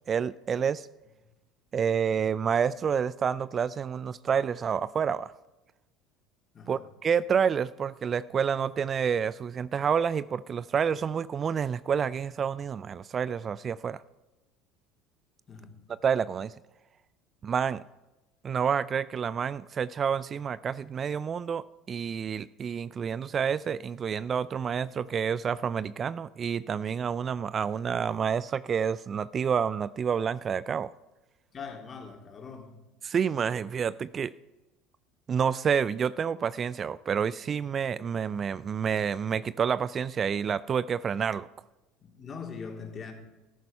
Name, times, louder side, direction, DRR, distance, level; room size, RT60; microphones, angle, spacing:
voice 1, 0.1-0.9 1.7-5.3 6.7-14.0 16.0-16.5 17.4-17.8 18.4-30.9 33.0-34.3 35.3-41.5, right 7 dB, 35° right, 19 dB, 0.4 m, -29 dB
voice 2, 31.5-32.8 42.0-43.1, left 5 dB, 35° left, 2 dB, 3.7 m, -41 dB
14.0 x 13.5 x 5.5 m, 1.0 s
hypercardioid pair, 70°, 0 cm